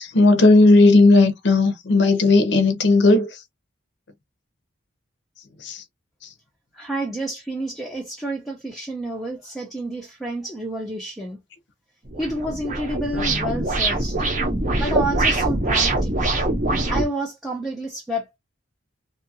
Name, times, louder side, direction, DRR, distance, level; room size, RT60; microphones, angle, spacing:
voice 1, 0.0-3.3 5.6-5.8, left 2 dB, 60° left, 0.6 m, -15 dB
voice 2, 6.7-11.4 12.2-14.2 14.7-16.1 16.9-18.3, right 1 dB, ahead, 0.5 m, -29 dB
sound 1, 12.1-17.0, right 2 dB, 40° right, 0.7 m, -23 dB
2.7 x 2.3 x 2.6 m
head